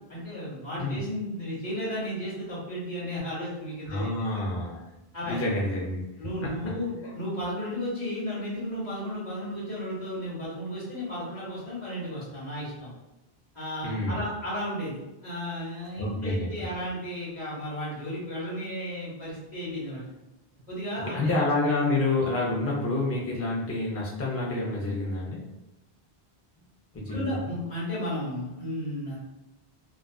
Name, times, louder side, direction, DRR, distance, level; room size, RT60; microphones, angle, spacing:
voice 1, 0.1-4.4 5.1-5.4 6.2-12.9 13.5-20.0 20.7-21.3 27.1-29.2, equal, 45° left, -7 dB, 1.0 m, -34 dB
voice 2, 3.9-4.8 5.3-6.0 6.4-6.5 13.8-14.2 16.0-16.7 21.1-25.4 26.9-27.5, left 2 dB, 20° left, -4 dB, 0.4 m, -28 dB
2.5 x 2.3 x 2.3 m, 0.94 s
omnidirectional pair, 1.0 m